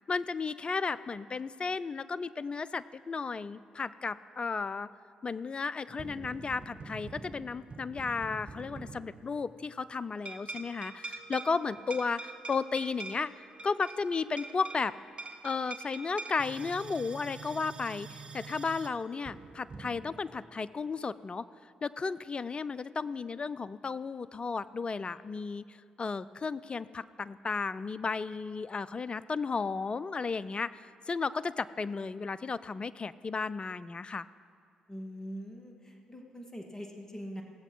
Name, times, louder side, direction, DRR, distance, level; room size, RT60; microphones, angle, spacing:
voice 1, 0.1-4.9 5.2-13.3 13.6-14.9 15.4-21.5 21.8-34.3, left 4 dB, 35° left, 16 dB, 0.4 m, -34 dB
sound 1, 5.9-9.5 10.2-20.2, right 3 dB, 40° right, 1.1 m, -45 dB
voice 2, 34.9-37.4, equal, 20° left, 2 dB, 2.0 m, -43 dB
18.0 x 7.6 x 4.7 m, 2.2 s
hypercardioid pair, 40°, 3 cm